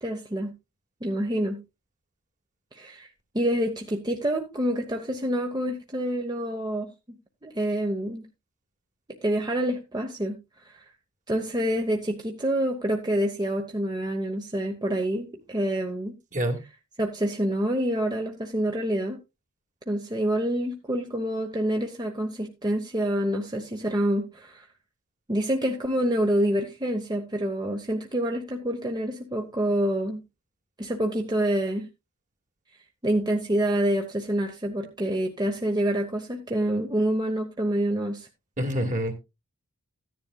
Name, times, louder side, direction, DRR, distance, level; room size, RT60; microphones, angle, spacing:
voice 1, 0.0-0.5 1.0-1.6 2.7-3.1 3.3-6.9 7.4-8.3 9.2-10.4 10.7-10.8 11.3-16.1 17.0-19.2 19.9-24.7 25.3-30.2 30.8-31.9 33.0-38.3, right 1 dB, 20° right, 1.0 m, -27 dB
voice 2, 38.6-39.1, right 1 dB, 35° right, 1.9 m, -26 dB
14.5 x 10.5 x 2.3 m
head